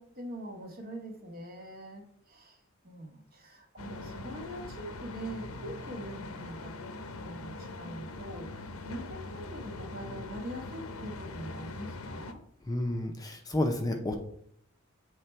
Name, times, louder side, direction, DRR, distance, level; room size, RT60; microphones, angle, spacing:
voice 1, 0.0-12.4, right 1 dB, 45° right, 3 dB, 1.2 m, -43 dB
sound 1, 3.8-12.3, left 2 dB, 90° left, 0.7 m, -42 dB
voice 2, 12.7-14.1, left 1 dB, 15° left, 3 dB, 0.6 m, -30 dB
8.2 x 3.3 x 4.5 m, 0.66 s
head